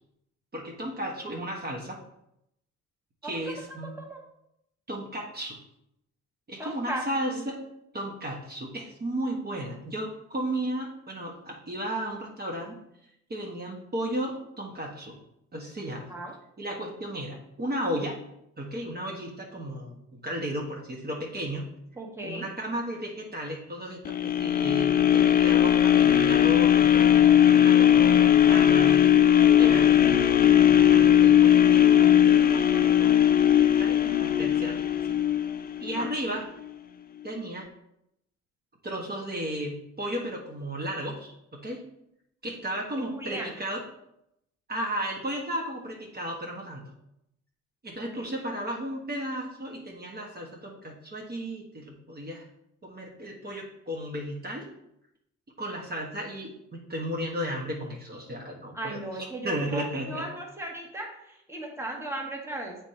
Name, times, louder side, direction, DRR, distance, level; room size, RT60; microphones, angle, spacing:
voice 1, 0.5-2.0 3.2-4.0 4.9-5.6 6.5-7.6 7.9-12.8 13.3-15.2 15.5-16.1 16.6-18.2 18.6-21.7 22.2-29.1 29.6-33.1 33.5-35.0 35.8-36.5 37.2-37.7 38.8-41.8 42.4-43.8 44.7-46.9 47.8-52.5 52.8-54.7 55.6-60.3, right 1 dB, 35° right, -1 dB, 1.3 m, -34 dB
voice 2, 3.2-4.2 6.6-7.0 7.3-7.5 16.1-16.3 22.0-22.5 35.9-36.1 43.0-43.5 48.0-48.3 58.7-59.8 60.1-62.8, right 2 dB, 10° right, -1 dB, 1.4 m, -37 dB
sound 1, 24.1-36.2 36.6-36.7, left 10 dB, 30° left, 0.4 m, -19 dB
7.3 x 3.6 x 4.3 m, 0.80 s
cardioid pair, 90°, 30 cm